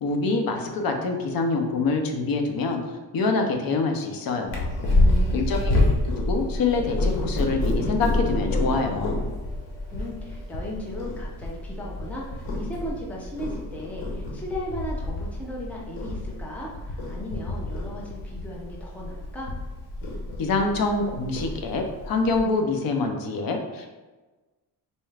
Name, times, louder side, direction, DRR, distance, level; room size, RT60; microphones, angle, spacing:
voice 1, 0.0-2.8 3.1-4.7 5.3-5.7 6.1-9.2 20.4-24.0, left 3 dB, 60° left, 4 dB, 0.6 m, -25 dB
Purr, 4.5-22.4, left 2 dB, 85° left, 1.0 m, -28 dB
voice 2, 4.8-5.6 9.9-19.5, left 1 dB, 5° left, -4 dB, 0.4 m, -36 dB
4.1 x 2.3 x 3.2 m, 1.2 s
wide cardioid pair, 180°, 40 cm